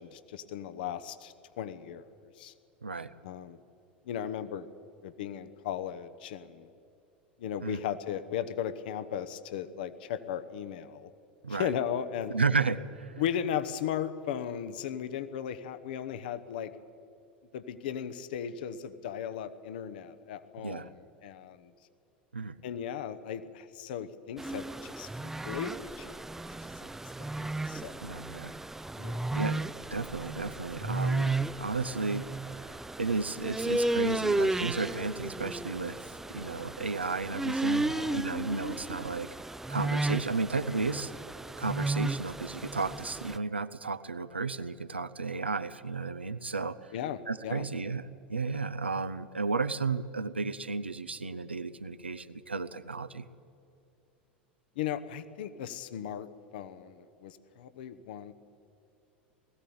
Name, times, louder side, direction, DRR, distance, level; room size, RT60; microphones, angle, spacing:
voice 1, 0.0-2.0 2.4-2.5 3.2-3.6 4.1-4.7 5.0-6.7 7.4-11.1 11.5-12.4 13.2-16.7 17.5-20.9 21.2-21.7 22.6-26.2 26.8-26.9 27.2-27.3 27.7-28.2 29.0-29.4 37.8-38.2 38.7-38.8 46.9-47.7 54.8-58.3, left 9 dB, 60° left, 11 dB, 1.0 m, -36 dB
voice 2, 2.8-3.1 7.6-7.8 11.4-11.7 12.3-13.1 20.6-20.9 22.3-22.6 27.4-27.5 28.0-28.5 29.3-29.6 29.9-32.2 32.6-39.3 39.7-41.1 41.6-46.8 47.3-53.3, right 4 dB, 85° right, 11 dB, 0.6 m, -33 dB
sound 1, 24.4-43.4, right 2 dB, 5° right, 0.4 m, -34 dB
20.0 x 15.0 x 8.6 m, 2.7 s
figure-of-eight pair, 80°, 6 cm